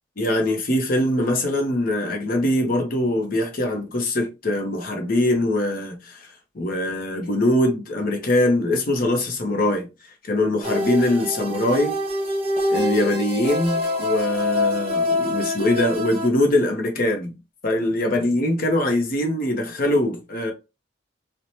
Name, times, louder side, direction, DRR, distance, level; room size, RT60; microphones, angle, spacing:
voice 1, 0.2-9.9 10.2-12.0 12.7-17.3 17.6-20.5, left 1 dB, 50° left, 0.7 m, -22 dB
sound 1, 10.6-16.3, left 1 dB, 30° right, 0.7 m, -25 dB
2.7 x 2.1 x 2.9 m
head